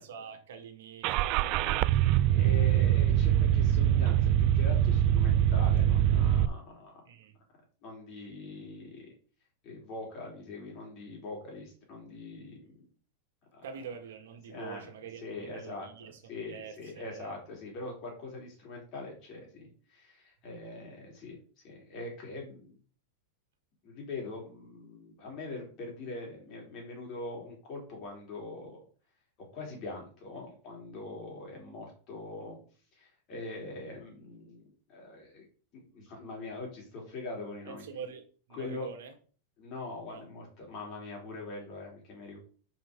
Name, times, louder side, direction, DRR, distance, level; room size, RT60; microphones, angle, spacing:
voice 1, 0.0-2.1 7.0-7.3 13.6-17.3 37.6-39.1 40.1-40.2, right 7 dB, 80° right, 1.5 m, -45 dB
Car / Engine starting, 1.0-6.5, right 11 dB, 35° right, 0.3 m, -24 dB
voice 2, 2.1-7.0 7.8-9.1 9.6-12.8 13.5-13.7 14.5-14.8 15.2-15.9 16.2-21.4 21.6-22.8 23.8-28.8 29.4-32.6 32.9-35.4 35.7-37.8 38.5-38.9 39.6-42.4, left 3 dB, 30° left, 3.2 m, -42 dB
5.8 x 5.0 x 5.1 m
supercardioid pair, 165°, 0 cm